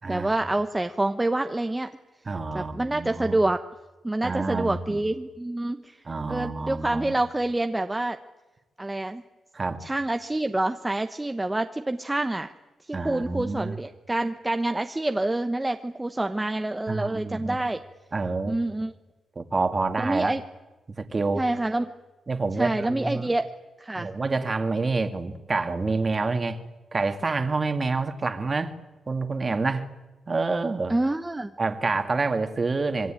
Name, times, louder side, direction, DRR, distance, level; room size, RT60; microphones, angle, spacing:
voice 1, 0.1-2.0 2.5-3.6 4.0-8.2 8.8-9.2 9.8-12.5 12.9-17.8 18.5-18.9 20.0-20.4 21.4-21.9 22.6-23.5 23.8-24.1 30.9-31.5, right 2 dB, 15° right, 7 dB, 1.1 m, -27 dB
voice 2, 2.3-3.4 4.2-5.0 6.1-7.2 9.5-9.8 12.9-13.7 16.9-17.6 18.1-18.6 19.4-20.3 21.0-21.5 22.3-23.3 24.0-26.6 26.9-28.8 29.1-29.9 30.3-30.9 31.6-33.1, right 3 dB, 30° right, 8 dB, 2.2 m, -27 dB
26.5 x 23.5 x 9.0 m, 1.1 s
cardioid pair, 120°, 0 cm